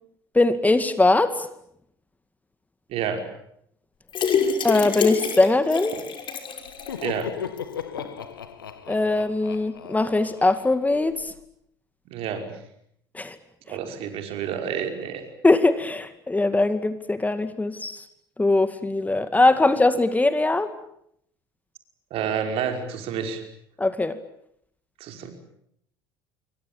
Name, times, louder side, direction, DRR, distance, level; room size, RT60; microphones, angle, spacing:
voice 1, 0.3-1.3 4.6-5.9 8.9-11.3 13.1-13.4 15.4-18.0 18.4-20.7 23.8-24.1, left 2 dB, 15° left, 11 dB, 2.3 m, -21 dB
voice 2, 2.9-3.3 7.0-7.3 12.1-12.6 13.7-15.2 22.1-23.4 25.0-25.3, right 7 dB, 60° right, 5 dB, 5.5 m, -29 dB
sound 1, 4.1-7.2 7.6-7.7 8.0-8.1, left 7 dB, 45° left, 5.9 m, -26 dB
Laughter, 6.6-11.3, left 8 dB, 85° left, 1.8 m, -37 dB
27.0 x 23.5 x 8.8 m, 0.71 s
hypercardioid pair, 65°, 11 cm